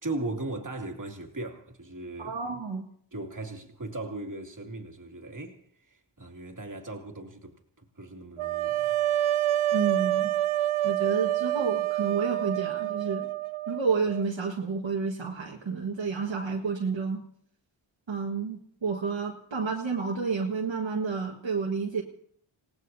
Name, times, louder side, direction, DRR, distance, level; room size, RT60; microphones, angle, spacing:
voice 1, 0.0-2.6 3.1-9.1, right 2 dB, 40° right, 2.6 m, -38 dB
voice 2, 2.2-2.9 9.7-10.3 10.8-13.3 13.7-17.2 18.1-22.0, right 5 dB, 65° right, 1.8 m, -30 dB
sound 1, 8.4-14.3, right 13 dB, 85° right, 0.5 m, -27 dB
27.5 x 18.0 x 2.8 m
cardioid pair, 65°, 49 cm